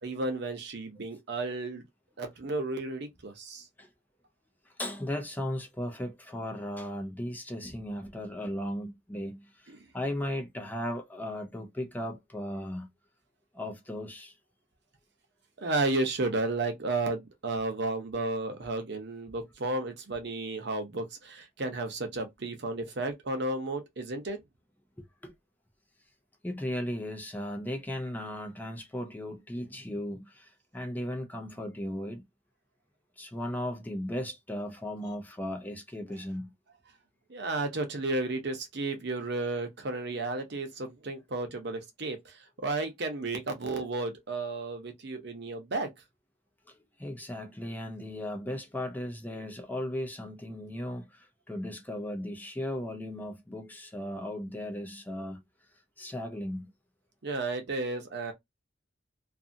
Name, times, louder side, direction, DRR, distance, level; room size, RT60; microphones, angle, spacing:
voice 1, 0.0-1.8 2.2-3.7 9.7-9.9 15.6-24.4 37.3-45.9 57.2-58.3, right 2 dB, 60° right, 0.8 m, -33 dB
voice 2, 4.7-12.9 13.5-14.3 25.0-25.3 26.4-32.2 33.2-36.5 46.7-55.4 56.0-56.7, left 1 dB, 10° left, 0.5 m, -36 dB
2.6 x 2.5 x 2.6 m
head